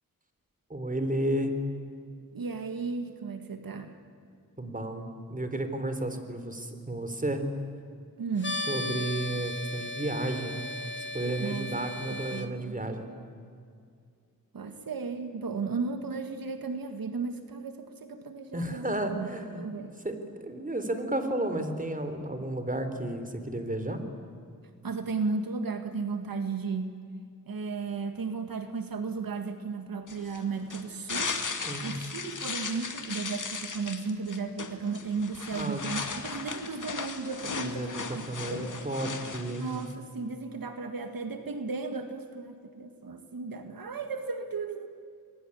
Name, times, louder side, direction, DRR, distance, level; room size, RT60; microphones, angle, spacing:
voice 1, 0.7-1.5 4.6-7.4 8.5-10.6 11.0-13.1 18.5-19.6 20.0-24.0 31.6-31.9 35.5-35.8 37.6-39.7, right 1 dB, 25° right, 8 dB, 3.7 m, -32 dB
voice 2, 2.3-3.9 8.2-8.6 11.4-12.8 14.5-19.9 24.8-27.0 27.5-31.3 31.8-38.2 38.5-38.8 39.6-44.9, right 4 dB, 90° right, 7 dB, 1.9 m, -35 dB
sound 1, 8.4-12.5, left 2 dB, 35° left, 2.0 m, -36 dB
sound 2, 30.1-39.9, left 4 dB, 60° left, 2.2 m, -37 dB
27.0 x 22.0 x 10.0 m, 2.3 s
wide cardioid pair, 70°, 34 cm